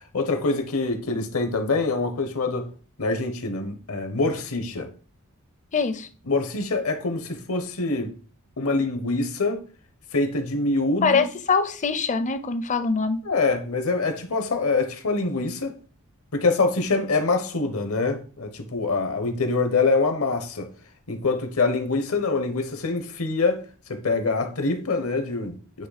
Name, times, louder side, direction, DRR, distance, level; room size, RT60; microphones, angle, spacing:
voice 1, 0.1-2.7 3.0-4.9 6.3-8.1 8.6-9.6 10.1-11.3 13.2-15.8 16.3-20.7 21.1-23.6 23.9-25.9, left 3 dB, 70° left, 1.0 m, -25 dB
voice 2, 5.7-6.1 11.0-13.2, left 5 dB, 35° left, 0.6 m, -23 dB
8.7 x 3.1 x 4.1 m
head